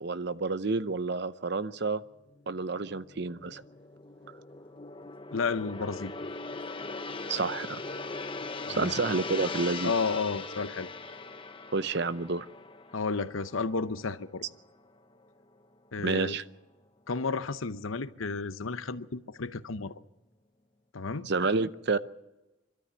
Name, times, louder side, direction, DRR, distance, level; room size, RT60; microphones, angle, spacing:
voice 1, 0.0-2.0 2.5-3.6 7.3-7.8 8.7-9.9 11.7-12.5 16.0-16.4 21.2-22.0, right 3 dB, 55° right, 0.7 m, -29 dB
Gong, 2.4-14.8 15.2-15.4, left 3 dB, 25° left, 0.8 m, -40 dB
voice 2, 5.3-6.1 8.7-9.0 9.8-10.9 12.9-14.4 15.9-16.4 17.1-19.9 20.9-21.3, left 4 dB, 85° left, 0.9 m, -32 dB
25.5 x 13.0 x 8.2 m
head